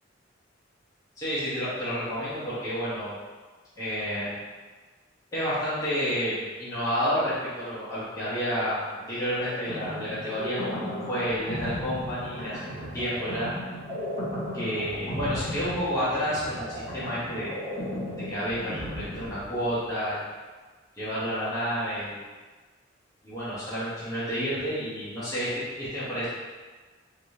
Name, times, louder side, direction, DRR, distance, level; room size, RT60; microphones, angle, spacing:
voice 1, 1.2-3.2 3.8-4.4 5.3-13.5 14.5-17.6 18.1-20.2 21.0-22.2 23.2-26.3, equal, 20° left, -12 dB, 1.0 m, -30 dB
sound 1, 9.4-19.9, equal, 35° left, 1.4 m, -36 dB
3.1 x 3.0 x 2.7 m, 1.3 s
head